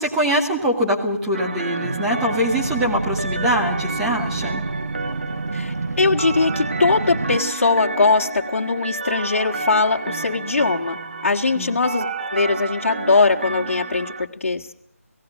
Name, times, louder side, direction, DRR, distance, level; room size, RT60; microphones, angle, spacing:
voice 1, 0.0-4.6 11.5-11.8, equal, 5° right, -1 dB, 2.0 m, -23 dB
sound 1, 1.3-14.3, right 3 dB, 40° right, 1.3 m, -31 dB
sound 2, 1.8-7.4, right 3 dB, 80° right, 1.1 m, -28 dB
voice 2, 5.5-12.1 12.3-14.7, left 3 dB, 50° left, -1 dB, 1.9 m, -20 dB
26.0 x 18.0 x 6.5 m, 0.69 s
figure-of-eight pair, 170°, 8 cm